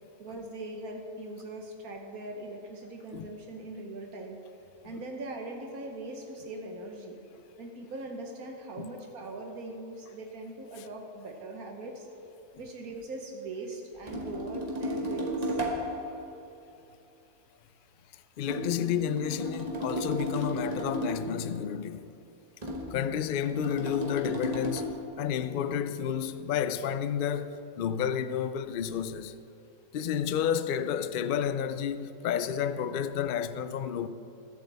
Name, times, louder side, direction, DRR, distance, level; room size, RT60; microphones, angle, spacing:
voice 1, 0.2-4.4 4.8-7.2 7.6-12.1 12.6-15.6, right 2 dB, 80° right, 1.6 m, -41 dB
sound 1, 14.1-16.1 18.5-21.4 22.6-24.8, equal, 30° right, 1.6 m, -34 dB
voice 2, 18.4-22.1 22.9-29.3 29.9-34.1, left 8 dB, 75° left, 0.4 m, -31 dB
21.5 x 8.1 x 3.4 m
omnidirectional pair, 1.5 m